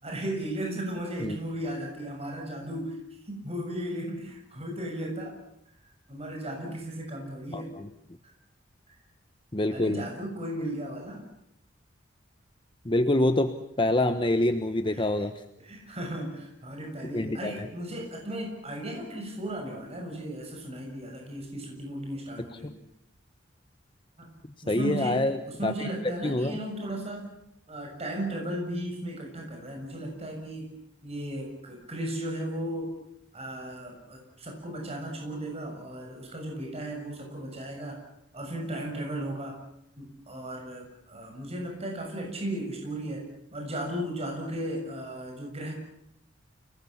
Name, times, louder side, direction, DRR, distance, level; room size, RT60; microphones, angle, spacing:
voice 1, 0.0-3.0 3.3-5.3 6.1-7.7 9.7-11.2 14.9-15.1 15.6-22.7 24.2-24.3 24.6-27.3 27.7-30.7 31.0-33.0 33.3-38.0 38.3-39.6 40.0-43.2 43.5-45.8, right 1 dB, 35° right, 1 dB, 7.1 m, -35 dB
voice 2, 7.5-7.9 9.5-10.0 12.8-15.3 17.1-17.7 24.7-25.9 26.2-26.6, left 1 dB, 25° left, 8 dB, 1.2 m, -26 dB
30.0 x 20.0 x 7.3 m, 0.76 s
head